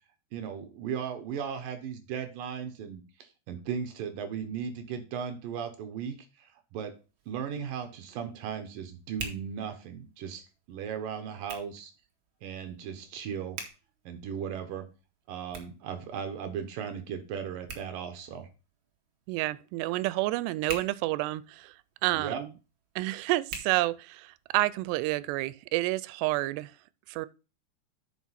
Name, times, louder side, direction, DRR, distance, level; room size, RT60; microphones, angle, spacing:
voice 1, 0.3-6.9 7.3-11.9 12.4-13.6 14.1-14.9 15.3-18.5 22.1-22.4, right 7 dB, 65° right, 2.5 m, -37 dB
Hands, 6.9-24.6, right 5 dB, 50° right, 1.6 m, -48 dB
voice 2, 19.3-21.7 22.0-22.5 23.0-26.7 27.1-27.3, right 18 dB, 90° right, 2.7 m, -29 dB
9.3 x 6.1 x 4.2 m
omnidirectional pair, 4.8 m